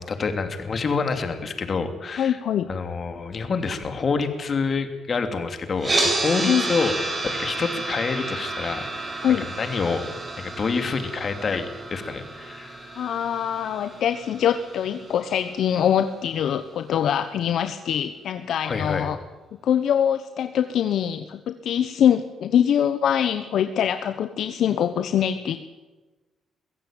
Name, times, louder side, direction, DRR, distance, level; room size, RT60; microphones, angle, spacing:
voice 1, 0.0-2.4 2.7-6.9 7.2-8.9 9.6-10.1 10.4-13.0 18.6-19.1, left 4 dB, 45° left, 7 dB, 2.9 m, -27 dB
voice 2, 2.2-2.7 6.5-6.7 9.2-9.5 13.0-19.2 19.6-25.6, left 9 dB, 70° left, 9 dB, 1.0 m, -23 dB
sound 1, 5.8-15.9, right 2 dB, 30° right, 6.9 m, -31 dB
23.0 x 15.5 x 9.0 m, 1.2 s
cardioid pair, 90°, 0 cm